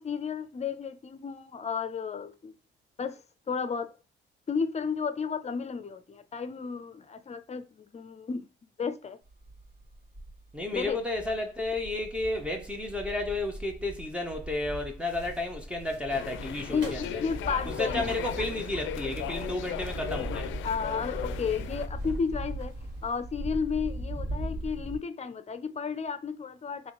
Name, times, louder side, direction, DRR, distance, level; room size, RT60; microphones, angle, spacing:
voice 1, 0.0-2.5 3.0-3.2 3.5-3.9 4.5-8.5 8.8-9.2 10.7-11.0 16.7-18.3 20.6-26.9, left 6 dB, 35° left, 0.6 m, -33 dB
sound 1, 9.3-25.0, right 1 dB, 50° right, 1.8 m, -39 dB
voice 2, 10.5-17.2 17.6-20.6, left 2 dB, 5° right, 0.8 m, -32 dB
sound 2, 15.0-23.2, right 2 dB, 65° right, 2.1 m, -50 dB
sound 3, 16.1-21.9, left 11 dB, 75° left, 0.4 m, -38 dB
3.5 x 3.1 x 3.8 m
cardioid pair, 90°, 20 cm